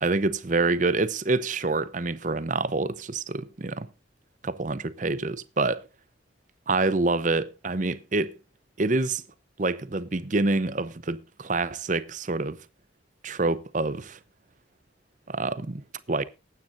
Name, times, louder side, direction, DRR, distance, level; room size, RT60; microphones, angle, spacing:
voice 1, 0.0-3.9 4.4-5.9 6.7-8.4 8.8-9.2 9.6-12.6 13.2-14.2 15.3-15.8 16.1-16.2, right 3 dB, 40° right, 0.7 m, -26 dB
19.0 x 9.3 x 2.6 m
head